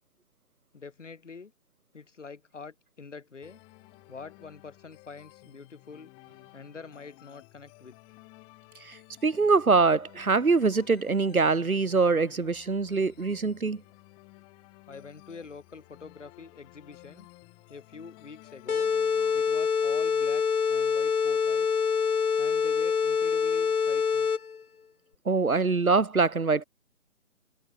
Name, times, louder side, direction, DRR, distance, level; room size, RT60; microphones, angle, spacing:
voice 1, 0.7-1.5 1.9-3.6 4.1-6.1 6.5-8.2 14.9-17.3 17.7-18.9 19.3-21.8 22.4-24.3, left 5 dB, 55° left, 4.5 m, -46 dB
sound 1, 3.4-19.4, left 29 dB, 10° left, 2.0 m, -54 dB
voice 2, 9.2-13.8 25.2-26.6, right 4 dB, 75° right, 1.6 m, -24 dB
sound 2, 18.7-24.6, left 6 dB, 85° left, 0.8 m, -25 dB
figure-of-eight pair, 150°, 43 cm